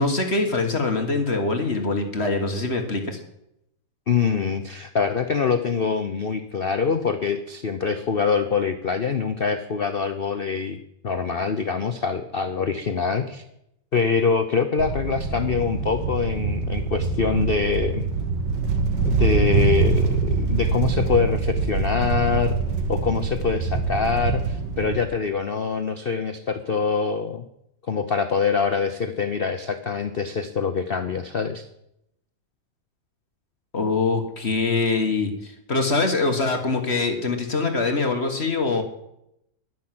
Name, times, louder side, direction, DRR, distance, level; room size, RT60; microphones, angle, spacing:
voice 1, 0.0-3.2 33.7-38.8, left 3 dB, 35° left, 5 dB, 1.6 m, -23 dB
voice 2, 4.1-10.8 11.0-13.4 13.9-18.1 19.0-22.6 22.9-27.5 27.9-31.6, left 5 dB, 60° left, 8 dB, 0.6 m, -24 dB
sound 1, 14.8-25.0, right 4 dB, 65° right, 1.9 m, -24 dB
11.0 x 10.5 x 7.6 m, 0.80 s
omnidirectional pair, 2.1 m